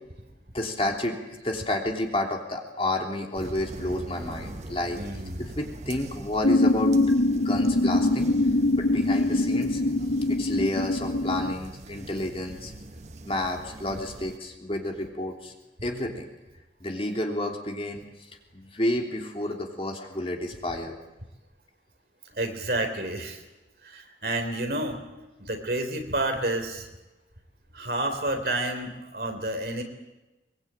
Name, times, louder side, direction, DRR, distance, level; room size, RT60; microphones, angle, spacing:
voice 1, 0.5-1.2 1.4-5.0 5.4-7.0 7.3-8.3 8.8-9.8 10.4-12.7 13.2-15.5 15.8-16.3 16.8-21.0, left 1 dB, 30° left, 2 dB, 3.2 m, -30 dB
sound 1, 3.3-14.4, right 1 dB, 40° right, 0.9 m, -42 dB
voice 2, 4.9-5.5 22.3-23.4 23.8-25.0 25.4-26.9 27.7-29.8, right 1 dB, 55° right, 5 dB, 3.9 m, -30 dB
sound 2, 6.4-11.5, left 2 dB, 90° left, 0.8 m, -23 dB
23.0 x 22.5 x 9.0 m, 1.1 s
head